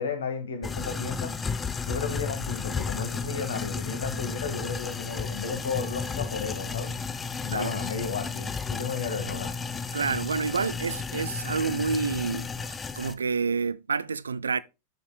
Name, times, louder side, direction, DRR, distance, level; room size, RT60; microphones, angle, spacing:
voice 1, 0.0-1.3 1.8-6.9 7.4-9.5, left 5 dB, 65° left, 1.7 m, -33 dB
sound 1, 0.6-13.1, left 5 dB, 15° left, 0.7 m, -33 dB
voice 2, 9.9-12.5 13.0-14.6, right 5 dB, 75° right, 0.4 m, -28 dB
9.4 x 6.9 x 2.2 m
figure-of-eight pair, 90°, 0 cm